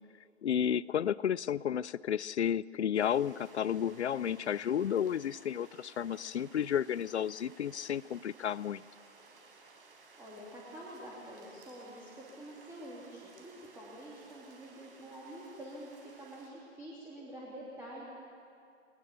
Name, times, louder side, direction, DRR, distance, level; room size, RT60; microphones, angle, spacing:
voice 1, 0.4-8.8, left 9 dB, 70° left, 22 dB, 0.5 m, -32 dB
sound 1, 2.9-16.5, right 4 dB, 50° right, 4.6 m, -58 dB
voice 2, 10.2-18.0, right 1 dB, 5° right, -5 dB, 2.8 m, -47 dB
22.0 x 20.0 x 6.8 m, 2.4 s
figure-of-eight pair, 125°, 36 cm